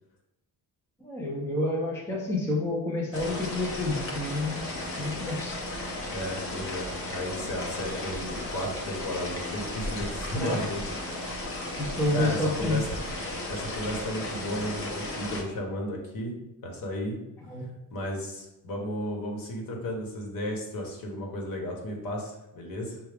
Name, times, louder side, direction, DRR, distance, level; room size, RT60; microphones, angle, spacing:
voice 1, 1.0-4.7 5.0-5.6 10.4-10.6 11.8-12.8 17.5-17.6, left 2 dB, 5° left, -2 dB, 0.4 m, -29 dB
sound 1, 3.1-15.4, left 1 dB, 35° left, 0.8 m, -35 dB
voice 2, 6.1-10.8 12.1-12.8 13.5-16.3 16.6-17.2 17.9-23.0, equal, 55° left, 0 dB, 1.1 m, -34 dB
6.8 x 2.3 x 3.3 m, 0.95 s
cardioid pair, 180°, 41 cm